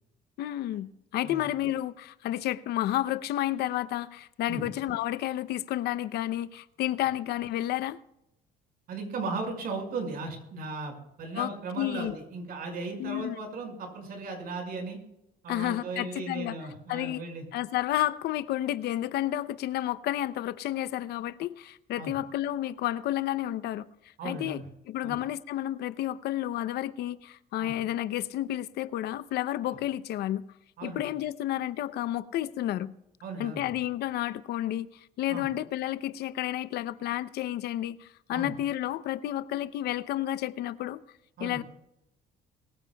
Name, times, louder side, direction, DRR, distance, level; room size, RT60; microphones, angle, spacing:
voice 1, 0.4-8.0 11.3-12.2 13.0-13.4 15.5-16.6 16.9-17.2 17.5-24.6 24.9-30.4 30.8-32.9 33.4-41.0 41.4-41.6, left 13 dB, 75° left, 0.7 m, -31 dB
voice 2, 8.9-15.0 15.4-17.4 22.0-22.2 24.2-24.7 25.0-25.2 27.6-27.7 30.8-31.0 33.2-33.7 35.3-35.5 38.3-38.5 41.4-41.6, right 3 dB, 65° right, 5.5 m, -36 dB
23.0 x 15.5 x 2.3 m
cardioid pair, 110°, 17 cm